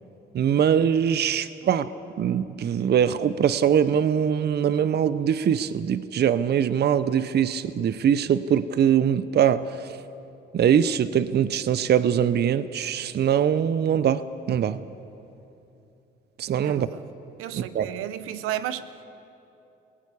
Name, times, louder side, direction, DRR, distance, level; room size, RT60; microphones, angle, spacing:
voice 1, 0.3-1.9 2.2-9.9 10.5-14.8 16.4-16.9 17.5-17.9, right 8 dB, 50° right, 15 dB, 0.7 m, -22 dB
voice 2, 16.6-17.0 17.4-19.0, right 12 dB, 85° right, 13 dB, 0.9 m, -33 dB
19.0 x 17.5 x 8.4 m, 2.9 s
cardioid pair, 75°, 21 cm